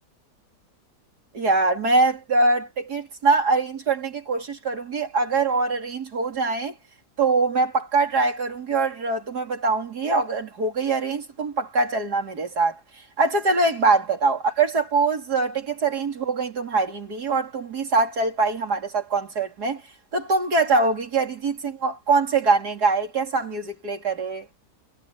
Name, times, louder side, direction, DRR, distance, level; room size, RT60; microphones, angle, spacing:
voice 1, 1.3-6.7 7.2-12.8 13.2-19.8 20.1-24.5, right 3 dB, 70° right, 3.6 m, -23 dB
omnidirectional pair, 1.8 m